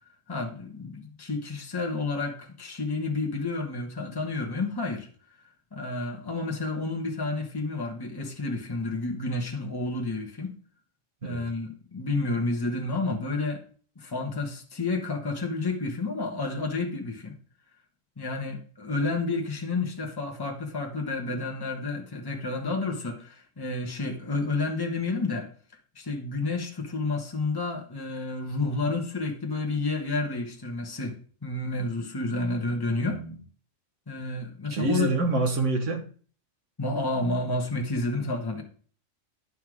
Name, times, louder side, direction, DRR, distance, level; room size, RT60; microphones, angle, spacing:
voice 1, 0.3-5.1 5.7-10.5 11.2-13.6 14.0-17.4 18.2-25.5 25.9-33.2 34.1-35.4 36.8-38.6, left 3 dB, 20° left, 1.3 m, -30 dB
voice 2, 33.0-33.4 34.7-36.0, right 3 dB, 75° right, 1.6 m, -27 dB
9.9 x 5.7 x 4.8 m
omnidirectional pair, 1.3 m